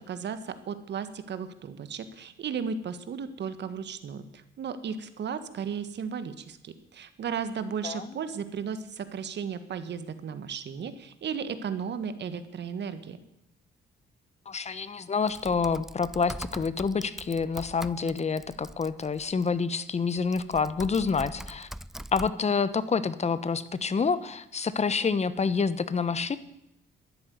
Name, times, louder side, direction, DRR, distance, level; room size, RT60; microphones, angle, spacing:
voice 1, 0.1-13.2, right 6 dB, 60° right, 11 dB, 1.7 m, -35 dB
voice 2, 7.8-8.1 14.5-21.7 22.1-26.4, left 5 dB, 35° left, 15 dB, 1.2 m, -28 dB
Typing, 15.3-19.5 20.1-22.3, equal, ahead, 0.5 m, -42 dB
13.5 x 11.0 x 9.5 m, 0.84 s
cardioid pair, 90°, 20 cm